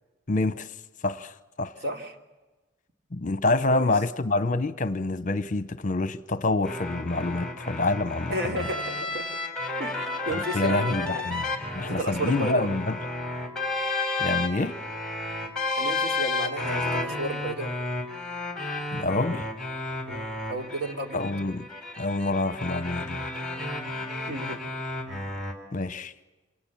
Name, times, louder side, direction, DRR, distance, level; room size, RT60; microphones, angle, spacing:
voice 1, 0.3-0.7 1.0-1.8 3.1-8.6 10.3-13.0 14.2-14.8 18.9-19.5 21.1-21.7 22.0-23.3 25.7-26.1, left 2 dB, 40° left, 0.9 m, -27 dB
voice 2, 1.8-2.1 3.5-3.9 8.3-9.4 9.8-11.4 11.8-12.7 15.7-17.7 20.0-21.2 24.3-24.6, right 1 dB, 55° right, 3.1 m, -33 dB
sound 1, 6.6-25.5, left 2 dB, 5° left, 3.9 m, -32 dB
28.0 x 27.0 x 7.4 m
head